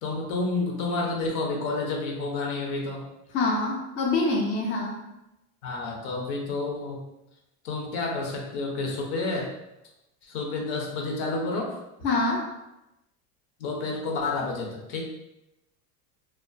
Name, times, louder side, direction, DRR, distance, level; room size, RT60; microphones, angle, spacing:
voice 1, 0.0-3.1 5.6-7.0 7.6-9.5 10.2-11.8 13.6-15.0, left 3 dB, 65° left, 0 dB, 0.7 m, -30 dB
voice 2, 3.3-5.0 12.0-12.5, left 3 dB, 30° left, -2 dB, 0.4 m, -25 dB
2.3 x 2.2 x 2.4 m, 0.91 s
supercardioid pair, 120°, 46 cm